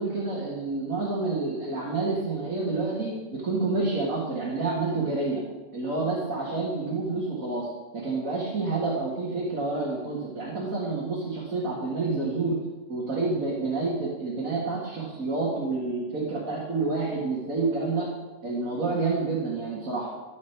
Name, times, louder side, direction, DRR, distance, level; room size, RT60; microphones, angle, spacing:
voice 1, 0.0-5.4 5.7-12.6 12.9-18.1 18.4-20.1, right 3 dB, 75° right, -6 dB, 2.5 m, -28 dB
14.0 x 7.5 x 4.7 m, 1.2 s
omnidirectional pair, 1.5 m